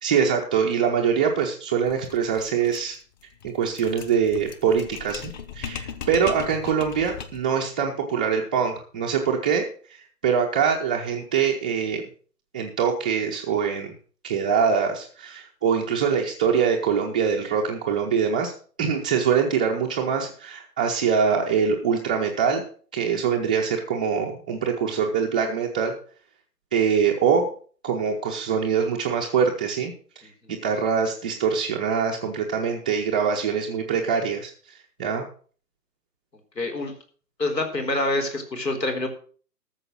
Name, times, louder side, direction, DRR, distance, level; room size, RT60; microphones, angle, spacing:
voice 1, 0.0-3.0 3.4-5.3 5.6-9.7 10.2-12.0 12.5-13.9 14.2-18.5 18.8-22.6 22.9-25.9 26.7-27.4 27.8-29.9 30.5-34.5 35.0-35.2, right 6 dB, 5° right, -4 dB, 0.5 m, -23 dB
sound 1, 1.8-7.5, left 7 dB, 30° left, 1.0 m, -38 dB
voice 2, 36.6-36.9 37.4-39.1, left 2 dB, 85° left, 5 dB, 3.9 m, -26 dB
13.0 x 6.8 x 6.2 m, 0.42 s
figure-of-eight pair, 135°, 49 cm